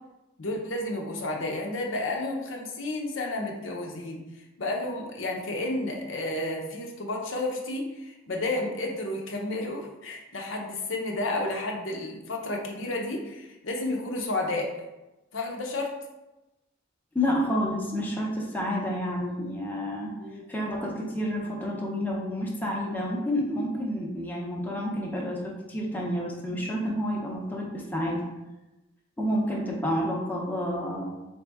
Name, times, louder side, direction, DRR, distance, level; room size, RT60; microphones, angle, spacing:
voice 1, 0.4-4.2 4.6-14.7 15.3-16.0 20.2-20.4, left 2 dB, 70° left, 1 dB, 0.7 m, -31 dB
voice 2, 17.1-20.1 20.5-28.2 29.2-31.1, equal, 10° left, -3 dB, 0.7 m, -29 dB
4.0 x 3.5 x 3.5 m, 1.0 s
head